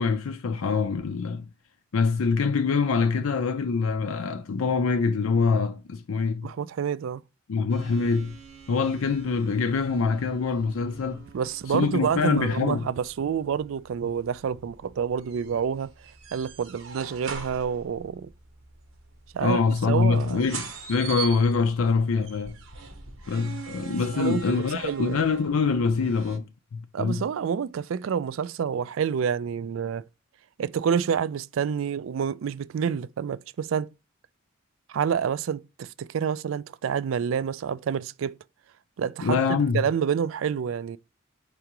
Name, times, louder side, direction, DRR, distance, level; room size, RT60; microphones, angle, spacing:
voice 1, 0.0-1.5 1.9-6.5 7.5-8.4 8.7-11.2 11.7-12.9 19.4-22.6 23.3-26.5 26.7-27.2 39.2-39.8, left 4 dB, 85° left, 0.5 m, -24 dB
voice 2, 6.4-7.2 11.3-15.9 16.3-18.3 19.3-19.6 19.9-20.5 24.1-25.3 26.9-30.0 30.6-33.9 34.9-38.4 39.0-39.4 39.7-41.0, right 7 dB, 70° right, 0.3 m, -28 dB
sound 1, 7.7-26.4, right 6 dB, 85° right, 1.1 m, -43 dB
4.8 x 3.4 x 2.9 m
head